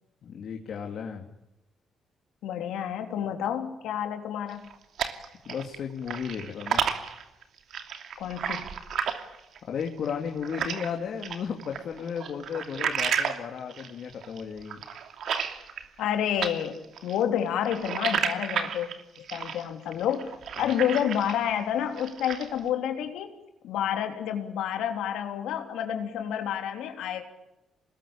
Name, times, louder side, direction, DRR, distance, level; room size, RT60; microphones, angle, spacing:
voice 1, 0.2-1.3 5.4-6.8 9.7-14.8 20.6-20.7, left 7 dB, 65° left, 2 dB, 2.9 m, -34 dB
voice 2, 2.4-4.7 8.2-8.8 16.0-18.9 19.3-23.3 23.6-27.2, left 9 dB, 85° left, 5 dB, 3.4 m, -29 dB
sound 1, 4.5-5.8 6.0-10.9 11.2-16.1 16.4-21.5 21.9-22.6, right 7 dB, 65° right, 2.8 m, -32 dB
26.0 x 20.5 x 8.9 m, 0.96 s
cardioid pair, 85°, 0 cm